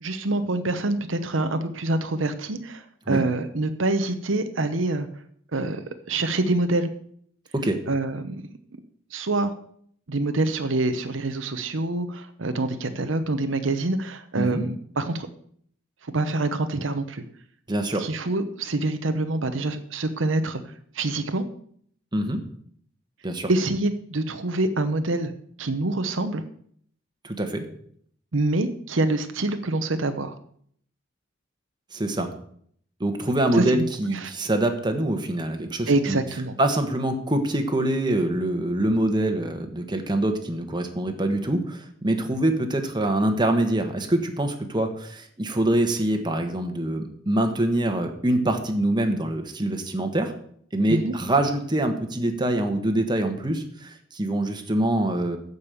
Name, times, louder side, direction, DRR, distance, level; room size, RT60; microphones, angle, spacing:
voice 1, 0.0-5.1 5.5-5.8 6.1-6.9 7.9-8.4 9.1-9.5 10.1-15.3 16.1-17.2 18.0-20.6 20.9-21.4 23.5-25.3 25.6-26.4 28.3-30.3 33.5-33.8 34.1-34.3 35.9-36.5 50.9-51.1, right 2 dB, 80° right, 9 dB, 0.9 m, -26 dB
voice 2, 17.7-18.1 22.1-22.4 23.2-23.5 27.2-27.6 31.9-32.3 33.0-36.2 36.6-50.3 50.7-55.4, right 1 dB, 25° right, 5 dB, 1.4 m, -24 dB
14.0 x 5.4 x 6.8 m, 0.63 s
head